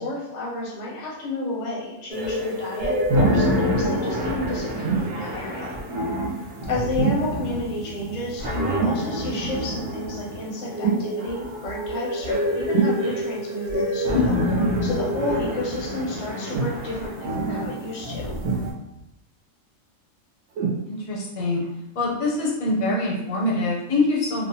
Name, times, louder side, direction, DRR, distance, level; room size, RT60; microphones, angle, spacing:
voice 1, 0.0-5.7 6.7-14.3 14.8-18.3, left 1 dB, 45° left, -4 dB, 0.6 m, -31 dB
sound 1, 2.1-18.7, equal, 55° right, 0.7 m, -27 dB
sound 2, 3.1-3.4 4.8-5.1 7.0-7.3 8.8-9.0 10.8-11.1 12.7-13.0 14.5-14.8 16.5-16.8 18.4-19.0 20.5-20.8 21.6-21.7, right 4 dB, 75° right, 1.1 m, -23 dB
voice 2, 14.1-14.5 20.9-21.6 21.9-24.5, left 2 dB, 80° left, -2 dB, 1.1 m, -24 dB
2.7 x 2.1 x 2.6 m, 0.88 s
omnidirectional pair, 1.4 m